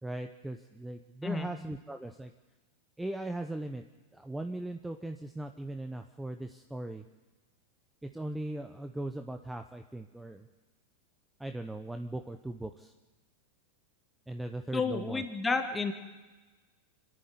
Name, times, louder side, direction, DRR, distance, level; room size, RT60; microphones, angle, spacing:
voice 1, 0.0-2.3 3.0-3.8 4.1-7.1 8.0-10.5 11.4-12.9 14.3-15.2, right 1 dB, 5° right, 7 dB, 1.0 m, -39 dB
voice 2, 14.7-15.9, left 4 dB, 15° left, 7 dB, 2.2 m, -31 dB
25.5 x 11.0 x 9.6 m, 1.2 s
hypercardioid pair, 105°, 0 cm